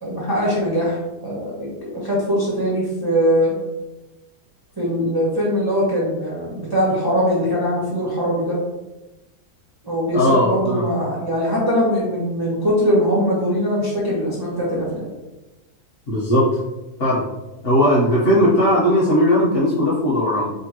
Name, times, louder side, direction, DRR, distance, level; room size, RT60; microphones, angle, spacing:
voice 1, 0.0-3.6 4.8-8.6 9.8-15.1, equal, 25° right, -7 dB, 0.5 m, -21 dB
voice 2, 10.1-10.8 16.1-16.5 17.0-17.2 17.6-20.5, equal, 45° left, -10 dB, 1.0 m, -17 dB
5.1 x 2.2 x 2.8 m, 1.0 s
omnidirectional pair, 1.7 m